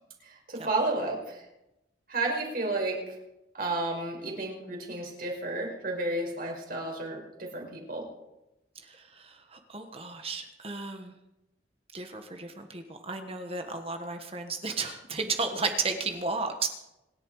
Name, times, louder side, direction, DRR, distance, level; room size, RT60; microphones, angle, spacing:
voice 1, 0.2-1.5 2.1-3.2 3.5-8.0, right 2 dB, 50° right, 0 dB, 5.2 m, -32 dB
voice 2, 8.7-11.2 11.9-16.7, right 4 dB, 30° right, 5 dB, 1.5 m, -34 dB
26.0 x 11.5 x 4.9 m, 0.92 s
head